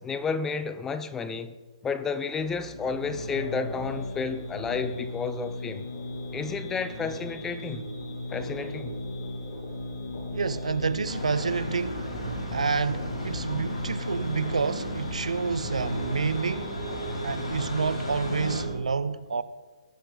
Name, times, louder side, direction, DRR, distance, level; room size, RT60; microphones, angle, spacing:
voice 1, 0.0-1.5 1.8-5.9 6.3-7.9 8.3-9.0, left 5 dB, 10° left, 0.5 m, -31 dB
sound 1, 2.3-18.7, left 2 dB, 40° left, 2.2 m, -37 dB
sound 2, 5.9-18.9, right 4 dB, 45° right, 2.6 m, -41 dB
voice 2, 10.3-12.1 12.5-16.7 17.2-19.4, right 5 dB, 75° right, 0.7 m, -29 dB
sound 3, 11.0-18.6, left 1 dB, 65° left, 4.1 m, -37 dB
19.5 x 6.7 x 4.0 m
figure-of-eight pair, 140°, 4 cm